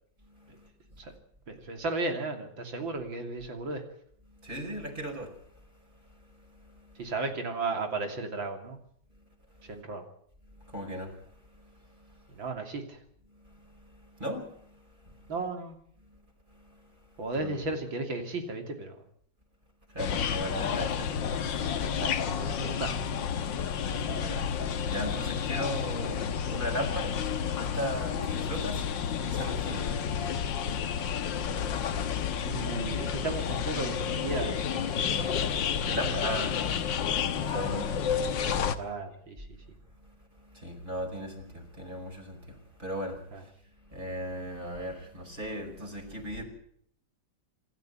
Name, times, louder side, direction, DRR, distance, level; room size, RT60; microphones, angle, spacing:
voice 1, 0.2-0.7 4.3-7.1 9.5-9.8 10.5-12.4 13.3-15.3 16.0-16.2 16.5-17.7 19.9-21.6 21.9-22.0 23.9-32.6 35.5-38.8 40.0-43.5 43.8-46.4, equal, 25° right, 5.4 m, -39 dB
voice 2, 1.5-3.8 7.0-8.8 9.6-10.1 12.3-13.0 15.3-15.8 17.2-19.0 21.8-23.0 28.1-28.3 32.4-35.0 38.8-39.5 43.3-43.4, right 3 dB, 85° right, 3.7 m, -35 dB
sound 1, 20.0-38.7, left 7 dB, 70° left, 1.9 m, -30 dB
26.5 x 12.5 x 9.2 m
omnidirectional pair, 2.1 m